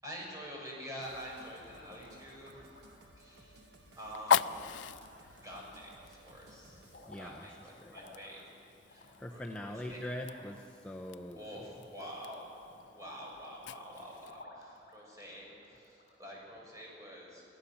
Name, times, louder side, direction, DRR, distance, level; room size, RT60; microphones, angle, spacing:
voice 1, 0.0-2.6 3.2-3.7 4.0-4.8 5.4-6.8 7.1-8.4 8.9-10.0 11.3-12.6 12.9-17.4, equal, 20° right, -3 dB, 5.9 m, -47 dB
sound 1, 0.9-3.2 4.0-5.9 6.2-16.3, left 1 dB, 50° left, 6.1 m, -59 dB
sound 2, 1.0-7.3, right 2 dB, 70° right, 1.7 m, -59 dB
Fire, 1.2-14.4, left 8 dB, 85° left, 0.4 m, -40 dB
voice 2, 7.1-8.0 9.2-11.8, left 1 dB, 5° left, 0 dB, 0.8 m, -43 dB
25.0 x 16.0 x 7.3 m, 2.8 s
head